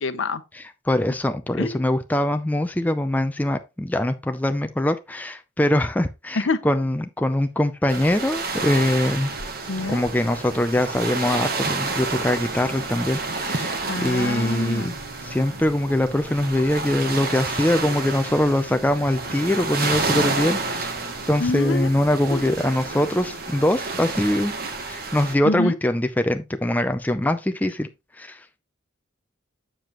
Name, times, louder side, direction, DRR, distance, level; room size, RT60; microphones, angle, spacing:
voice 1, 0.0-0.4 1.6-1.9 6.3-6.6 9.7-10.0 13.9-14.9 21.4-21.9 22.3-22.5 25.4-25.8, left 3 dB, 75° left, 0.8 m, -26 dB
voice 2, 0.9-9.3 9.9-14.9 15.2-20.9 21.3-24.5 24.9-27.9 28.2-28.4, left 1 dB, 10° left, 0.4 m, -23 dB
sound 1, 7.9-25.3, right 3 dB, 50° right, 1.3 m, -30 dB
sound 2, 8.6-23.4, right 1 dB, 85° right, 5.5 m, -43 dB
7.5 x 7.0 x 3.0 m
head